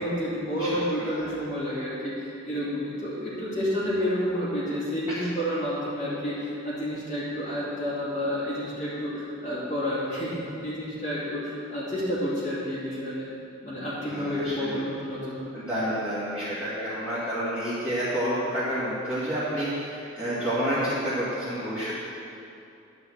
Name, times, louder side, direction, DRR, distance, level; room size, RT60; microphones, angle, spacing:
voice 1, 0.0-13.3 13.6-15.5, equal, 40° left, -9 dB, 2.6 m, -30 dB
voice 2, 1.0-1.3 5.1-5.2 14.0-14.8 15.5-22.0, equal, 5° right, -14 dB, 2.2 m, -29 dB
10.5 x 5.6 x 7.9 m, 2.7 s
head